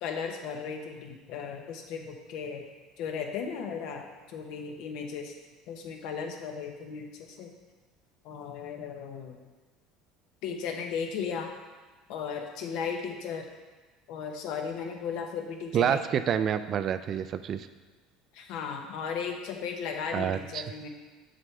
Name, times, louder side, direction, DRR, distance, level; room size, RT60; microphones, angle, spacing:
voice 1, 0.0-2.6 3.0-5.3 5.7-7.5 8.2-9.4 10.4-11.5 12.1-13.4 14.1-16.0 18.3-20.9, left 6 dB, 70° left, 3 dB, 1.0 m, -36 dB
voice 2, 15.7-17.7 20.1-20.7, right 8 dB, 40° right, 12 dB, 0.3 m, -28 dB
7.6 x 6.1 x 3.3 m, 1.3 s
supercardioid pair, 120°, 0 cm